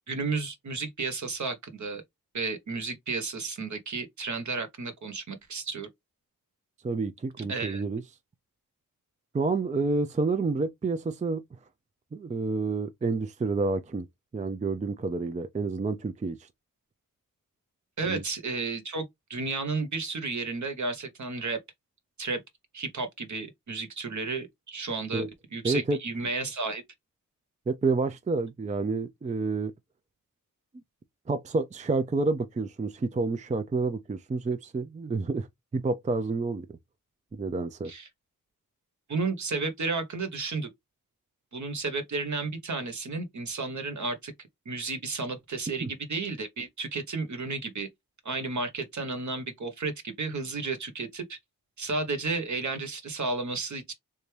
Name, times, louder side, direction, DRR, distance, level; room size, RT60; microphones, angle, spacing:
voice 1, 0.1-2.0 2.3-5.9 7.4-7.8 18.0-19.0 19.3-21.6 22.2-22.4 22.7-25.2 25.5-26.8 37.8-38.1 39.1-40.7 41.5-44.3 44.6-47.9 48.2-51.4 51.8-53.9, right 3 dB, 55° right, 1.1 m, -32 dB
voice 2, 6.8-8.0 9.3-11.4 12.1-14.1 14.3-16.5 18.1-18.2 25.1-25.3 25.6-26.0 27.7-29.7 31.3-35.5 35.7-36.7 37.3-37.9 45.8-45.9, right 3 dB, 20° right, 0.4 m, -29 dB
3.4 x 2.7 x 3.2 m
wide cardioid pair, 90°, 34 cm